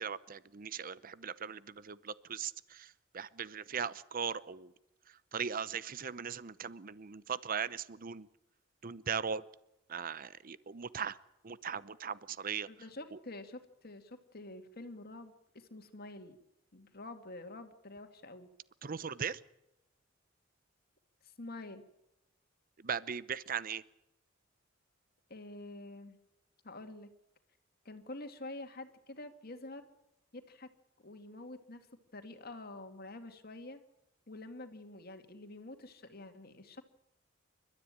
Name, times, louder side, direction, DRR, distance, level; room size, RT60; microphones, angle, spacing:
voice 1, 0.0-4.7 5.3-8.3 8.8-9.4 9.9-11.2 11.4-12.7 18.8-19.4 22.8-23.8, right 7 dB, 50° right, 17 dB, 0.7 m, -39 dB
voice 2, 12.7-16.4 16.7-18.5 21.4-21.8 25.3-26.2 26.6-27.1 27.8-29.8 30.3-30.7 31.0-31.9 32.1-33.8 34.3-36.8, left 2 dB, 55° left, 6 dB, 2.3 m, -47 dB
29.5 x 13.0 x 8.9 m, 0.88 s
head